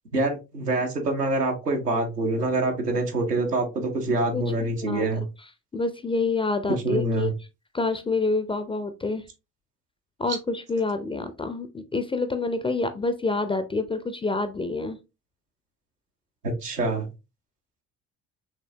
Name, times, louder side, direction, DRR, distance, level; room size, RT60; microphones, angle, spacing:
voice 1, 0.1-5.2 6.8-7.3 16.4-17.1, right 2 dB, 85° right, 2 dB, 0.9 m, -25 dB
voice 2, 4.3-5.3 5.7-7.3 7.7-9.2 10.2-15.0, left 3 dB, 15° left, 9 dB, 0.4 m, -27 dB
5.1 x 3.2 x 2.7 m, 0.27 s
figure-of-eight pair, 50°, 46 cm